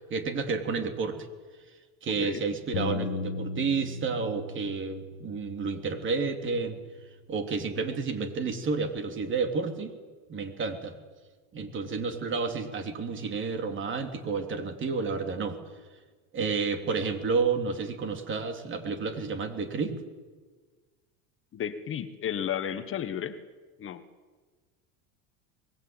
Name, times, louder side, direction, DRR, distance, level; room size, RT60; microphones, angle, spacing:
voice 1, 0.1-1.2 2.0-6.8 7.3-10.0 10.3-10.9 11.5-15.6 16.3-20.0, right 4 dB, 30° right, 6 dB, 3.3 m, -30 dB
Bass guitar, 2.7-7.2 7.8-9.0, left 4 dB, 85° left, 1.6 m, -39 dB
voice 2, 21.5-23.4 23.8-24.0, left 9 dB, 35° left, 10 dB, 1.4 m, -33 dB
23.5 x 20.5 x 8.9 m, 1.4 s
supercardioid pair, 130°, 37 cm